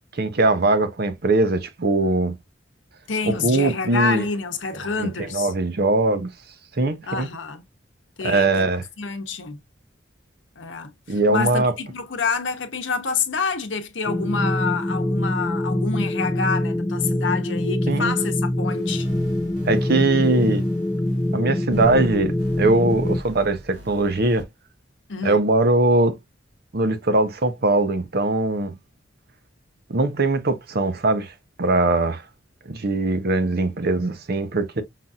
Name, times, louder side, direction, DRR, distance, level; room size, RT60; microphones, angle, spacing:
voice 1, 0.1-2.4 3.2-4.3 5.0-6.3 6.8-7.3 8.2-8.8 11.1-11.7 17.9-18.2 19.7-20.6 21.3-22.3 22.6-24.4 25.2-26.2 26.7-28.7 29.9-31.3 31.6-32.2 32.7-34.8, right 2 dB, 55° right, 0.8 m, -21 dB
voice 2, 3.1-5.5 7.1-7.6 8.2-8.7 9.0-9.6 10.6-19.1 25.1-25.4, left 4 dB, 75° left, 0.9 m, -27 dB
sound 1, 14.0-23.2, left 1 dB, 10° left, 0.4 m, -24 dB
sound 2, 18.7-24.4, equal, 85° right, 1.9 m, -43 dB
5.7 x 2.6 x 2.3 m
head